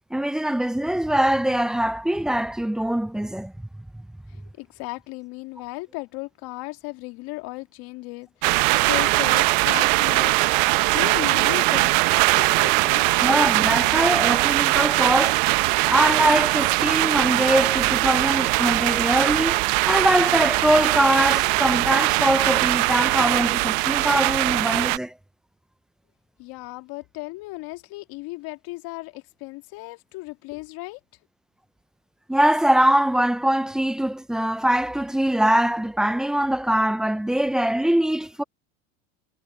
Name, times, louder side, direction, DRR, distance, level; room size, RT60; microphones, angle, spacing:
voice 1, 0.1-3.5 13.2-15.4 15.8-25.1 32.3-38.4, right 1 dB, ahead, 0.3 m, -22 dB
voice 2, 4.3-10.3 10.9-13.3 26.4-31.0, left 23 dB, 55° left, 2.0 m, -36 dB
sound 1, 8.4-25.0, right 26 dB, 60° right, 1.0 m, -21 dB
supercardioid pair, 110°, 43 cm